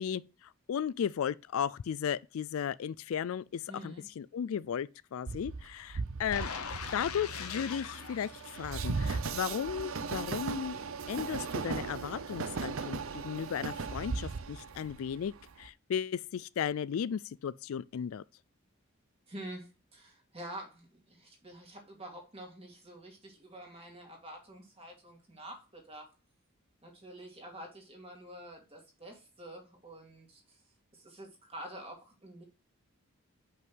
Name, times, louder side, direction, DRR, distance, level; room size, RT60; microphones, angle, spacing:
voice 1, 0.0-6.5 6.9-10.8 11.1-18.2, left 8 dB, 70° left, 0.3 m, -35 dB
voice 2, 3.7-4.0 19.3-26.1 26.8-30.6 30.9-32.4, right 1 dB, 25° right, 2.2 m, -47 dB
Train, 5.3-15.7, right 4 dB, 65° right, 0.6 m, -37 dB
sound 1, 6.3-9.3 9.7-9.8, left 5 dB, 90° left, 1.0 m, -41 dB
5.6 x 5.4 x 6.1 m
head